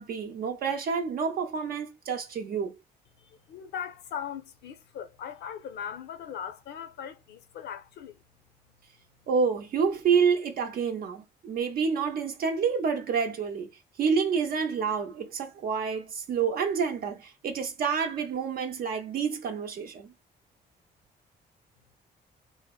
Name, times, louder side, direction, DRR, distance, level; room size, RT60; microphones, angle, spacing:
voice 1, 0.0-2.7 9.3-13.7 14.0-20.1, right 6 dB, 65° right, 0.6 m, -28 dB
voice 2, 3.2-8.2, left 8 dB, 80° left, 0.5 m, -39 dB
2.7 x 2.1 x 2.3 m
cardioid pair, 80°, 17 cm